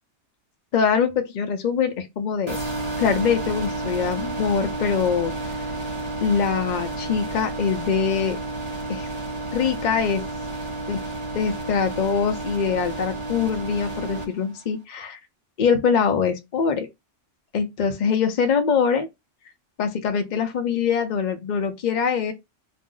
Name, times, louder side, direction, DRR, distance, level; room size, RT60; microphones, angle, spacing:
voice 1, 0.7-2.6 3.0-5.3 6.2-8.4 8.9-9.1 9.5-10.2 10.9-11.0 11.3-15.2 15.6-16.9 17.5-19.1 19.8-22.3, left 6 dB, 55° left, 0.5 m, -23 dB
sound 1, 2.5-14.2, right 2 dB, 25° right, 1.0 m, -31 dB
2.5 x 2.0 x 3.6 m
omnidirectional pair, 1.2 m